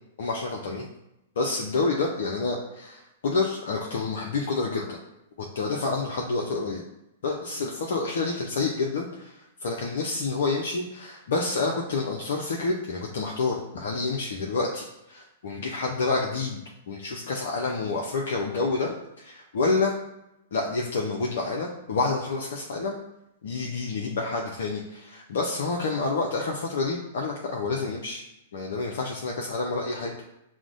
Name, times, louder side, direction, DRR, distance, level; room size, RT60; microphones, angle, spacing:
voice 1, 0.2-0.9 1.4-5.0 5.4-6.8 7.2-16.6 16.9-20.0 20.5-23.0 23.4-28.2 28.5-30.2, left 3 dB, 60° left, -1 dB, 0.5 m, -28 dB
5.9 x 2.1 x 2.5 m, 0.88 s
figure-of-eight pair, 105°, 0 cm